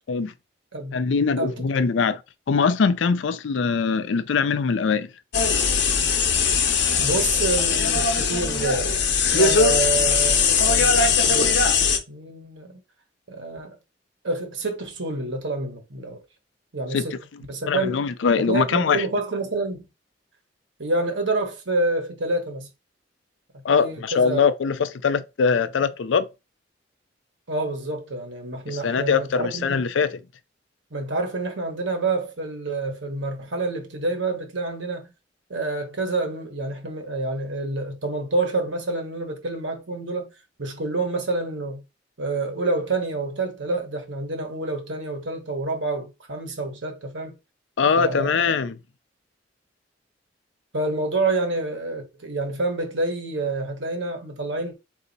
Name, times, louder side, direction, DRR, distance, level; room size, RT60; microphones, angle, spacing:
voice 1, 0.9-2.2 2.5-5.1 16.9-17.0 17.7-19.0 23.6-26.3 28.7-30.2 47.8-48.7, left 5 dB, 85° left, 0.4 m, -22 dB
sound 1, 5.3-12.0, left 5 dB, 70° left, 0.8 m, -20 dB
voice 2, 7.0-8.9 9.3-12.8 13.3-13.8 14.2-16.2 16.7-17.2 17.5-18.0 18.4-19.9 20.8-22.7 23.7-24.4 27.5-29.8 30.9-35.1 35.5-40.3 40.6-41.8 42.2-47.4 48.0-48.5 50.7-54.7, right 2 dB, 85° right, 1.3 m, -28 dB
4.0 x 2.7 x 4.0 m
head